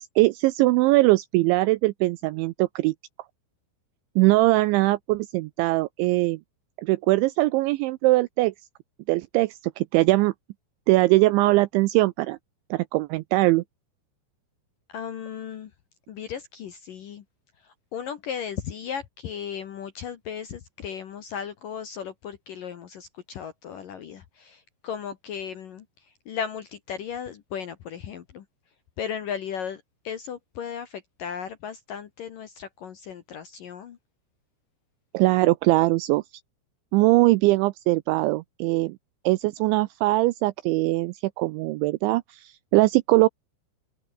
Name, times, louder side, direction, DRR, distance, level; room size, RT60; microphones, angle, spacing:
voice 1, 0.0-2.9 4.2-6.4 6.8-8.5 9.1-10.3 10.9-12.4 12.7-13.6 35.1-36.2 36.9-39.0 39.3-43.3, right 20 dB, 85° right, 2.7 m, -21 dB
voice 2, 14.9-15.7 16.1-17.2 17.6-28.5 29.0-34.0, left 8 dB, 65° left, 2.3 m, -36 dB
open air
omnidirectional pair, 5.9 m